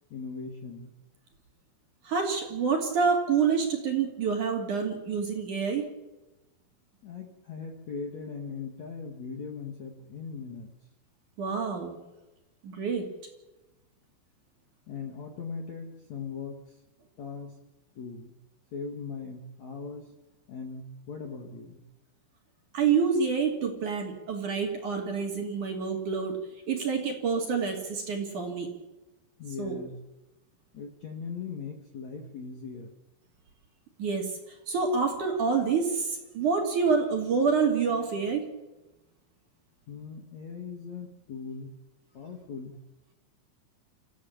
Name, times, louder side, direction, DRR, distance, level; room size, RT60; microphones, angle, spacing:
voice 1, 0.1-0.9 7.0-10.8 14.9-16.8 17.2-17.6 18.0-18.4 18.7-20.1 20.5-21.8 29.4-29.9 30.7-32.9 39.9-41.7 42.1-42.8, left 5 dB, 50° left, 2 dB, 2.3 m, -39 dB
voice 2, 2.0-5.9 11.4-12.0 12.6-13.1 22.7-26.4 26.7-28.7 29.6-29.8 34.0-38.5, right 5 dB, 45° right, 2 dB, 3.4 m, -27 dB
29.5 x 15.0 x 7.3 m, 1.0 s
omnidirectional pair, 5.6 m